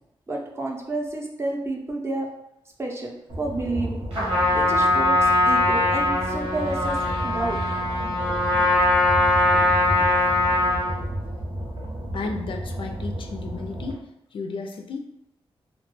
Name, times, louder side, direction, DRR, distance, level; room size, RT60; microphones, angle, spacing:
voice 1, 0.3-2.3 2.8-4.0 4.5-7.0 7.2-7.6, right 2 dB, 25° right, 0 dB, 0.5 m, -30 dB
sound 1, 3.3-13.9, right 1 dB, 60° right, 0.8 m, -32 dB
Trumpet, 4.1-11.0, left 2 dB, 80° right, 1.1 m, -21 dB
voice 2, 12.1-14.0 14.3-15.0, left 3 dB, 60° left, 4 dB, 0.3 m, -33 dB
2.2 x 2.2 x 3.0 m, 0.83 s
cardioid pair, 90°, 10 cm